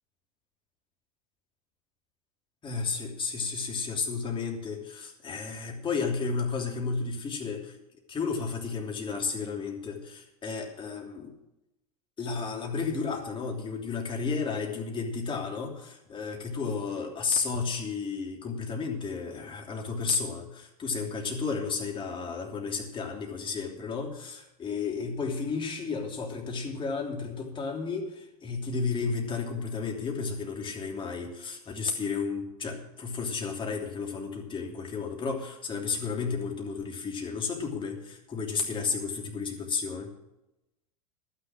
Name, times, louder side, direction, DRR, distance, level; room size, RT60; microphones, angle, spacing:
voice 1, 2.6-7.8 8.1-11.4 12.2-40.1, left 5 dB, 25° left, 1 dB, 3.0 m, -32 dB
11.5 x 10.0 x 6.2 m, 0.89 s
figure-of-eight pair, 85°, 20 cm